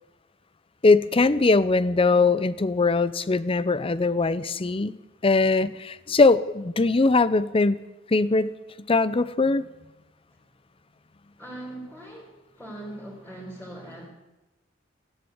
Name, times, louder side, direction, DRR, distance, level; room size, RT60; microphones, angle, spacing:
voice 1, 0.8-4.9 5.2-7.8 8.1-8.5 8.9-9.6, left 3 dB, 30° left, 17 dB, 0.6 m, -21 dB
voice 2, 11.4-14.1, right 1 dB, 5° left, -6 dB, 4.2 m, -40 dB
16.0 x 11.5 x 8.0 m, 1.0 s
head